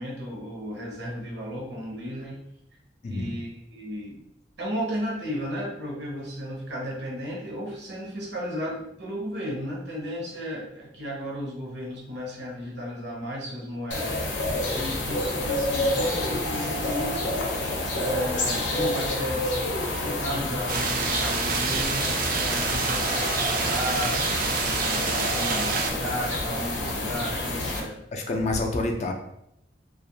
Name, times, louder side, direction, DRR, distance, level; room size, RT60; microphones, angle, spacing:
voice 1, 0.0-2.4 3.0-4.2 4.6-17.7 17.9-19.5 19.9-28.0, equal, 70° right, -2 dB, 0.8 m, -34 dB
sound 1, 13.9-27.8, left 1 dB, 85° left, 0.6 m, -28 dB
sound 2, 20.7-25.9, right 4 dB, 50° right, 0.3 m, -27 dB
voice 2, 28.1-29.1, left 2 dB, 40° left, 2 dB, 0.3 m, -27 dB
2.4 x 2.1 x 2.7 m, 0.77 s
head